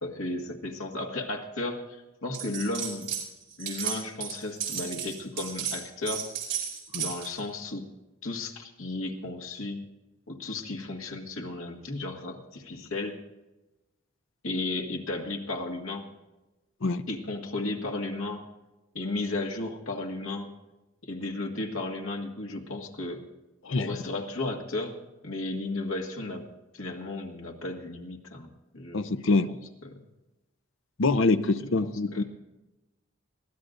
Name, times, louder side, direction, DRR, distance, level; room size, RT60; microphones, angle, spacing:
voice 1, 0.0-3.1 3.6-6.3 7.0-7.9 8.2-9.8 10.3-13.2 14.4-16.1 17.1-18.4 18.9-20.5 21.0-23.2 23.7-25.0 25.2-26.5 26.7-28.5 28.7-29.2 29.5-29.6 29.9-30.0 31.6-32.2, left 2 dB, 80° left, 2 dB, 1.8 m, -34 dB
sound 1, 2.3-3.3 3.5-7.4, right 8 dB, 55° right, 4.6 m, -34 dB
voice 2, 28.9-29.5 31.0-32.2, left 3 dB, 65° left, 11 dB, 0.6 m, -25 dB
22.5 x 16.0 x 2.6 m, 1.0 s
head